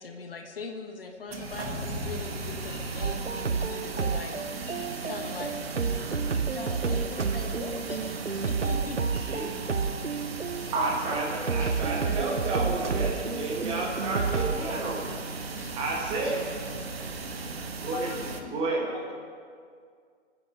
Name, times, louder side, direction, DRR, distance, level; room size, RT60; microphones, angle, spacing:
voice 1, 0.0-4.4 5.0-5.6 6.5-9.0, left 4 dB, 50° left, 4 dB, 1.5 m, -40 dB
sound 1, 1.3-18.4, left 1 dB, 5° left, 4.9 m, -45 dB
sound 2, 1.3-18.4, right 4 dB, 60° right, 1.5 m, -37 dB
sound 3, 3.0-14.8, right 5 dB, 85° right, 0.8 m, -31 dB
voice 2, 10.7-15.1 15.8-16.5 17.8-18.1 18.5-18.8, right 3 dB, 15° right, -2 dB, 1.7 m, -30 dB
voice 3, 17.9-19.3, left 5 dB, 25° left, 1 dB, 2.0 m, -40 dB
23.5 x 9.7 x 5.2 m, 2.1 s
figure-of-eight pair, 135°, 35 cm